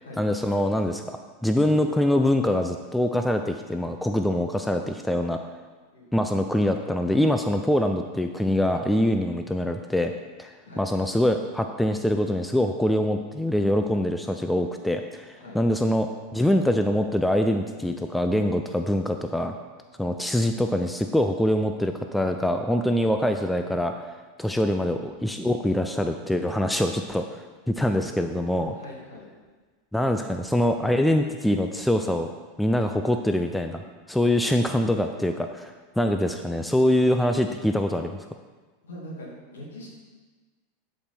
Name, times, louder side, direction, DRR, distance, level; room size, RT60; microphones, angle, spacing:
voice 1, 0.2-5.4 6.1-10.1 10.4-19.5 20.0-24.1 24.4-27.2 27.7-28.7 29.9-32.3 32.6-33.8 34.1-38.3, left 1 dB, 5° left, 6 dB, 0.5 m, -24 dB
voice 2, 5.9-6.3 10.6-10.8 15.3-15.6 28.7-29.3 38.8-39.9, left 1 dB, 65° left, -3 dB, 2.6 m, -43 dB
11.5 x 5.0 x 4.4 m, 1.3 s
figure-of-eight pair, 85°, 0 cm